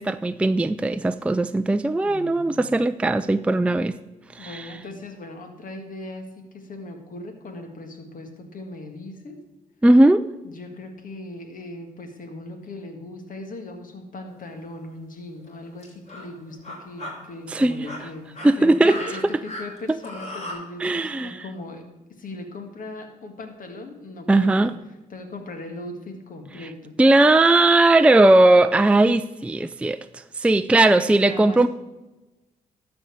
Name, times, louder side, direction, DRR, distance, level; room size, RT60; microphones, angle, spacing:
voice 1, 0.0-4.0 4.3-4.7 9.8-10.2 17.5-17.8 18.4-19.0 19.9-20.0 20.8-21.4 24.3-24.7 27.0-31.7, right 2 dB, 10° right, 10 dB, 0.4 m, -18 dB
voice 2, 2.0-2.7 4.4-9.4 10.4-21.8 22.2-24.7 25.1-27.0 31.0-31.7, left 2 dB, 65° left, 5 dB, 1.8 m, -38 dB
sound 1, 14.3-14.5 15.4-15.5 15.8-16.3 16.6-17.1 17.7-20.5, left 1 dB, 45° left, 3.8 m, -36 dB
12.5 x 4.4 x 6.7 m, 1.1 s
supercardioid pair, 60°, 15 cm